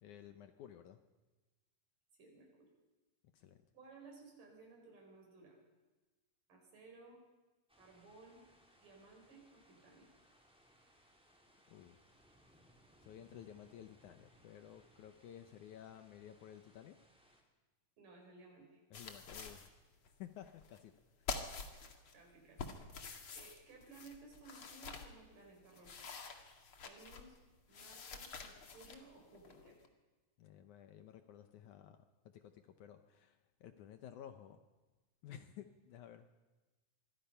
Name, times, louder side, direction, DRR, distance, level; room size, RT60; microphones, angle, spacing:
voice 1, 0.0-1.0 3.3-3.6 11.7-12.0 13.0-17.0 18.9-19.7 20.2-20.9 21.2-21.3 30.4-32.0 32.3-34.6 35.2-36.3, left 10 dB, 70° left, 8 dB, 2.2 m, -54 dB
voice 2, 2.2-2.7 3.7-5.6 6.5-7.2 7.8-8.4 8.8-10.1 18.0-18.8 22.1-22.7 23.3-26.1 26.8-27.4 27.7-29.8, right 3 dB, 85° right, 0 dB, 6.7 m, -58 dB
sound 1, 7.7-17.4, equal, ahead, 3.0 m, -68 dB
sound 2, 18.9-19.7 20.1-20.2 20.4-21.0 21.3-22.1 22.6-25.1 25.6-27.4 27.7-29.9, left 4 dB, 45° left, 2.5 m, -47 dB
24.5 x 23.5 x 5.7 m, 1.2 s
omnidirectional pair, 3.8 m